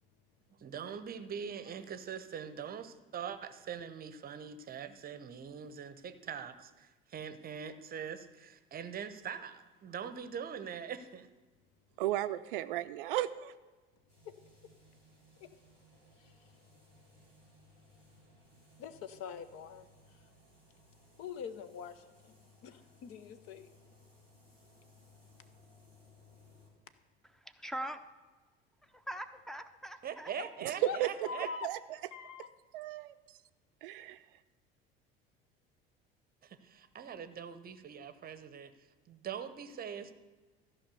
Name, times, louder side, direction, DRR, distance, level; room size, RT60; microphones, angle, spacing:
voice 1, 0.6-11.3 30.0-31.5 36.4-38.7 39.1-40.1, right 7 dB, 30° right, 12 dB, 0.8 m, -43 dB
voice 2, 12.0-13.5 30.6-30.7 31.0-31.1 31.6-31.8 32.7-33.4 33.8-34.2, right 14 dB, 60° right, 13 dB, 0.5 m, -35 dB
sound 1, 14.1-26.7, left 1 dB, 85° left, 2.8 m, -63 dB
voice 3, 18.8-19.9 21.2-22.4 22.6-23.7 30.8-31.0 31.2-31.7 32.1-32.5, left 6 dB, 50° left, 12 dB, 0.8 m, -43 dB
voice 4, 27.2-28.0 28.8-30.3, right 1 dB, ahead, 10 dB, 0.7 m, -42 dB
14.0 x 5.5 x 6.9 m, 1.3 s
figure-of-eight pair, 65°, 30 cm